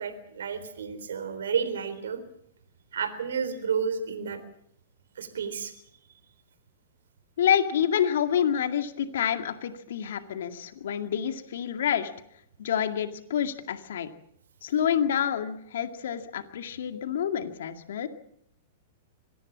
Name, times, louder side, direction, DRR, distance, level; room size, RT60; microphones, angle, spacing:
voice 1, 0.0-2.2 2.9-4.4 5.2-5.7, right 6 dB, 75° right, 10 dB, 3.8 m, -31 dB
voice 2, 7.4-12.1 12.6-14.1 14.6-18.1, left 9 dB, 70° left, 8 dB, 2.1 m, -28 dB
25.5 x 18.5 x 7.4 m, 0.71 s
hypercardioid pair, 110°, 0 cm